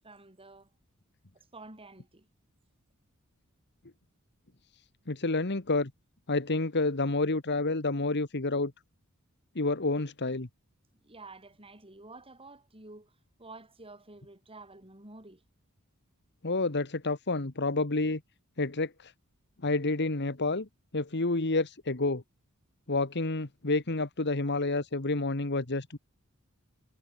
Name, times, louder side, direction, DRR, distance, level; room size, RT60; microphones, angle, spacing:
voice 1, 0.0-0.7 1.3-2.3 11.0-15.4, right 2 dB, 25° right, 7.4 m, -50 dB
voice 2, 5.1-5.9 6.3-8.7 9.5-10.5 16.4-18.2 18.6-19.1 19.6-20.7 20.9-22.2 22.9-26.0, left 2 dB, 55° left, 1.7 m, -29 dB
head